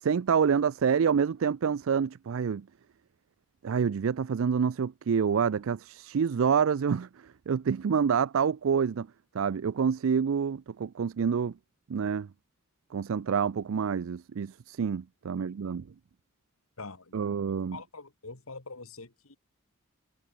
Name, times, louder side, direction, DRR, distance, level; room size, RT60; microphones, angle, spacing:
voice 1, 0.0-2.6 3.6-7.1 7.5-9.1 9.3-11.5 11.9-12.3 12.9-15.9 17.1-17.8, right 6 dB, 65° right, 0.4 m, -27 dB
voice 2, 16.8-19.4, left 3 dB, 80° left, 2.6 m, -45 dB
head